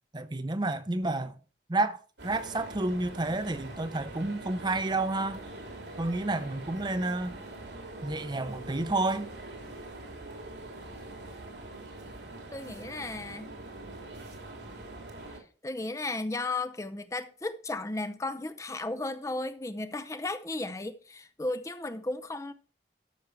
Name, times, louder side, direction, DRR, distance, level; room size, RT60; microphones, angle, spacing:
voice 1, 0.1-1.3 1.7-5.4 6.0-7.4 8.0-9.3, right 2 dB, 25° right, 0.7 m, -30 dB
sound 1, 2.2-15.4, right 2 dB, 85° right, 2.9 m, -43 dB
voice 2, 12.5-13.6 15.6-22.5, left 2 dB, 15° left, 0.5 m, -35 dB
13.0 x 6.0 x 4.6 m
head